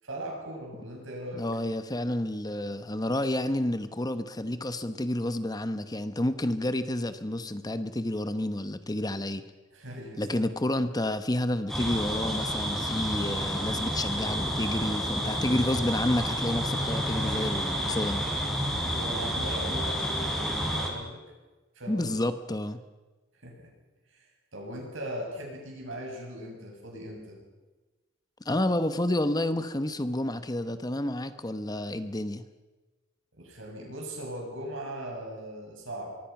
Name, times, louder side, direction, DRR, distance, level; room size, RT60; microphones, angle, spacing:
voice 1, 0.0-1.4 9.7-10.4 18.8-21.2 21.7-22.2 23.4-23.7 24.1-27.4 33.4-36.1, right 1 dB, 70° right, 0 dB, 7.8 m, -39 dB
voice 2, 1.3-9.4 10.2-18.3 21.9-22.8 28.4-32.4, left 1 dB, 20° left, 11 dB, 1.0 m, -30 dB
sound 1, 11.7-20.9, equal, ahead, 4.5 m, -30 dB
24.5 x 23.5 x 6.0 m, 1.2 s
head